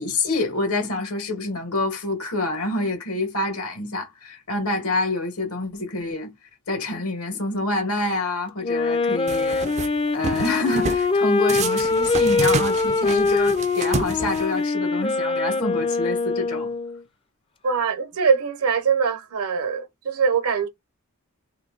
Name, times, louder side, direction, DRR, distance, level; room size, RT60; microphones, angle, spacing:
voice 1, 0.0-6.3 6.7-9.7 10.1-16.7, left 2 dB, 75° left, 1.7 m, -27 dB
Wind instrument woodwind instrument, 8.6-17.0, left 3 dB, 25° left, 0.5 m, -23 dB
sound 1, 9.3-9.9 10.2-11.1 11.5-14.7, right 4 dB, 30° right, 0.4 m, -30 dB
voice 2, 17.6-20.7, right 5 dB, 75° right, 0.8 m, -22 dB
3.1 x 2.7 x 3.8 m
head